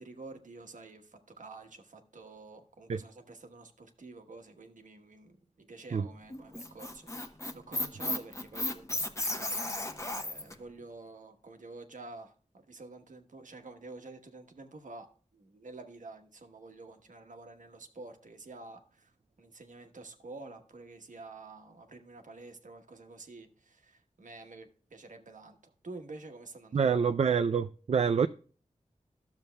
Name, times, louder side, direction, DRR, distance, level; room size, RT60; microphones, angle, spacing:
voice 1, 0.0-9.0 9.3-9.6 10.0-15.1 15.3-19.1 19.4-27.1, right 3 dB, 75° right, 1.2 m, -49 dB
Squeak, 6.3-10.5, left 1 dB, 20° left, 0.9 m, -34 dB
voice 2, 26.7-28.3, right 6 dB, 55° right, 0.4 m, -26 dB
13.0 x 6.9 x 2.2 m
wide cardioid pair, 70°, 13 cm